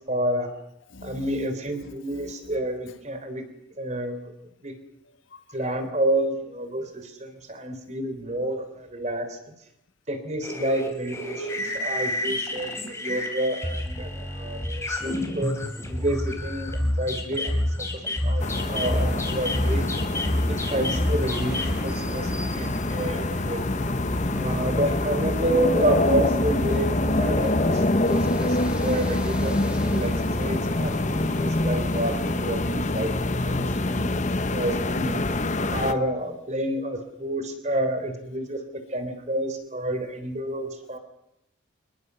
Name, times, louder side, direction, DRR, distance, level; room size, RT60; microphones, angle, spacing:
voice 1, 0.1-0.5 1.0-3.4 3.8-4.7 5.5-9.4 10.1-15.5 15.9-19.9 20.5-23.6 24.3-30.1 30.4-34.2 34.5-35.2 35.7-41.0, right 1 dB, 35° right, 8 dB, 3.7 m, -29 dB
voice 2, 0.9-1.3 2.1-2.3 5.3-5.4 14.8-15.1 22.5-22.9 23.8-24.4, left 3 dB, 65° left, 9 dB, 1.5 m, -47 dB
sound 1, 10.4-21.8, left 1 dB, 15° left, 3.6 m, -29 dB
sound 2, 18.4-35.9, left 2 dB, 35° left, 1.0 m, -25 dB
sound 3, 18.5-32.5, equal, 5° right, 2.1 m, -39 dB
25.5 x 21.5 x 7.0 m, 0.86 s
head